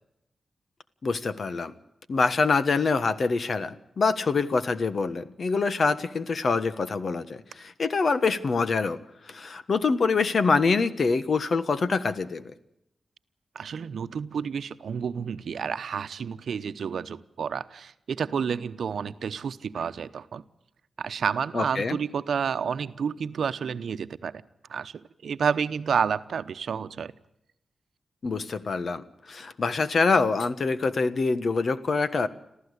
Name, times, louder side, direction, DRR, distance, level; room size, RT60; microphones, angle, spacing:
voice 1, 1.0-1.7 2.1-9.0 9.3-12.4 21.5-22.0 28.2-32.3, left 4 dB, 60° left, 13 dB, 1.4 m, -25 dB
voice 2, 13.5-20.4 21.0-24.3 24.7-27.1, right 6 dB, 85° right, 12 dB, 0.9 m, -30 dB
27.0 x 15.0 x 8.2 m, 0.84 s
wide cardioid pair, 100°, 0 cm